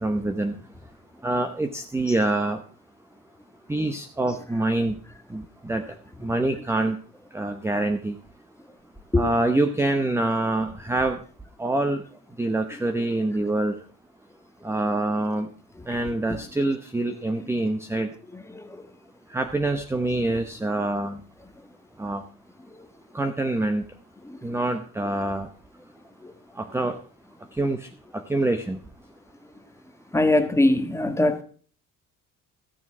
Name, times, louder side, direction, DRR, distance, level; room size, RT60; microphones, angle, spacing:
voice 1, 0.0-0.5 1.2-2.6 3.7-5.0 5.3-5.8 6.2-7.0 7.3-8.2 9.1-11.2 11.6-12.0 12.4-13.7 14.6-15.5 15.9-18.1 19.3-21.2 22.0-22.2 23.1-23.8 24.4-25.5 26.6-27.0 27.5-27.9 28.1-28.8, right 2 dB, 10° right, 0.8 m, -25 dB
voice 2, 18.5-18.9 24.3-24.4 26.2-26.3 30.1-31.4, left 1 dB, 10° left, 1.3 m, -22 dB
15.0 x 7.0 x 6.0 m
cardioid pair, 150°, 33 cm